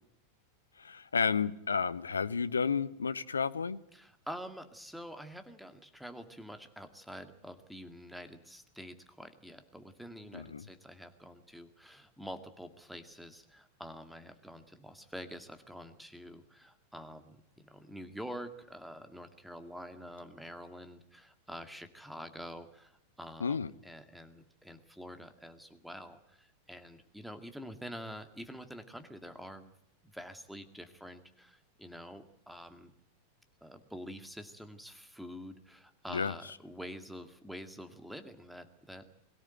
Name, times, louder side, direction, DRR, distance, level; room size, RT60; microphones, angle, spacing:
voice 1, 0.8-3.8 10.3-10.7 23.4-23.7 36.1-36.3, left 5 dB, 75° left, 16 dB, 0.9 m, -31 dB
voice 2, 3.9-29.7 30.0-32.9 33.6-39.1, equal, ahead, 9 dB, 2.1 m, -47 dB
22.5 x 17.5 x 9.1 m, 0.76 s
figure-of-eight pair, 90°, 0 cm